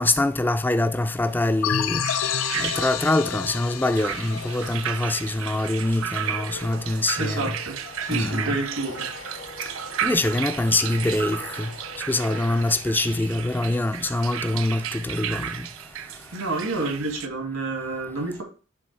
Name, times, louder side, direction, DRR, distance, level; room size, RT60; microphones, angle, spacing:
voice 1, 0.0-2.0 2.6-7.5 8.1-8.6 10.0-11.7 12.1-15.7, left 2 dB, 10° left, 0.3 m, -24 dB
sound 1, 1.3-17.3, right 10 dB, 70° right, 0.4 m, -34 dB
sound 2, 1.6-6.1, left 8 dB, 75° left, 0.5 m, -29 dB
sound 3, 4.3-13.4, left 4 dB, 60° left, 1.0 m, -43 dB
voice 2, 7.2-9.0 16.3-18.4, right 2 dB, 90° right, 2.2 m, -29 dB
7.1 x 3.5 x 4.6 m
head